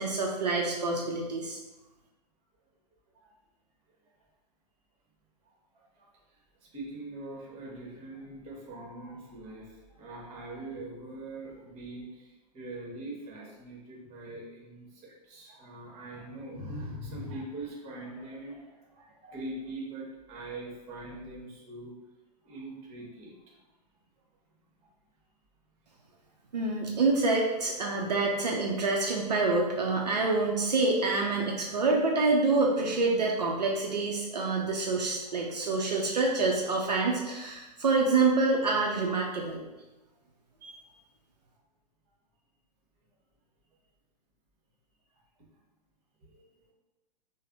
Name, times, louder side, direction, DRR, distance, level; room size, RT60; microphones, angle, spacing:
voice 1, 0.0-1.6 26.5-39.6 40.6-40.7, right 3 dB, 75° right, -1 dB, 0.5 m, -27 dB
voice 2, 5.4-6.1 6.6-21.9 22.4-23.4 46.3-46.5, right 1 dB, 30° right, -2 dB, 1.0 m, -42 dB
3.2 x 2.0 x 3.7 m, 1.1 s
figure-of-eight pair, 100°, 21 cm